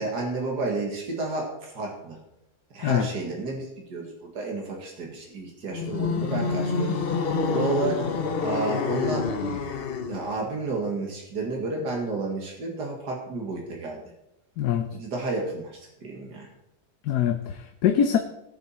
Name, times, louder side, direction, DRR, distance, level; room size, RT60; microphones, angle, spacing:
voice 1, 0.0-2.2 2.7-7.0 7.5-8.0 8.4-9.3 10.1-14.0 14.9-16.5, right 3 dB, 90° right, -1 dB, 2.6 m, -31 dB
sound 1, 5.7-10.4, left 5 dB, 45° left, 0.8 m, -27 dB
voice 2, 14.6-14.9 17.1-18.2, left 9 dB, 75° left, 6 dB, 1.3 m, -23 dB
17.0 x 7.3 x 4.3 m, 0.86 s
omnidirectional pair, 1.7 m